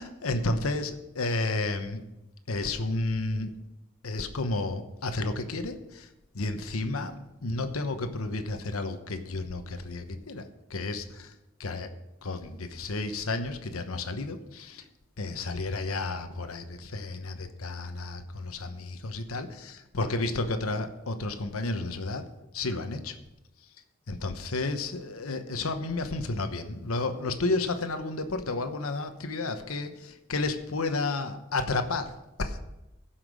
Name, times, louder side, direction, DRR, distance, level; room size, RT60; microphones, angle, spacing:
voice 1, 0.0-2.0 2.5-3.5 4.0-6.1 6.3-10.4 10.7-11.3 11.6-11.9 12.2-14.8 15.2-22.2 22.5-23.1 24.1-32.6, left 2 dB, 85° left, 8 dB, 1.0 m, -32 dB
15.5 x 5.8 x 6.3 m, 0.93 s
head